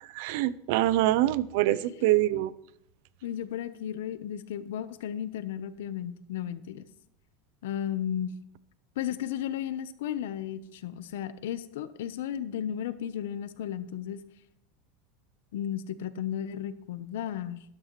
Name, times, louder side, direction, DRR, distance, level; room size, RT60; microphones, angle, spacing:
voice 1, 0.1-2.5, right 15 dB, 65° right, 0.6 m, -25 dB
voice 2, 1.7-2.5 3.2-6.8 7.6-8.3 9.0-14.2 15.5-17.6, left 10 dB, 85° left, 0.9 m, -34 dB
12.5 x 12.0 x 3.2 m
supercardioid pair, 155°, 0 cm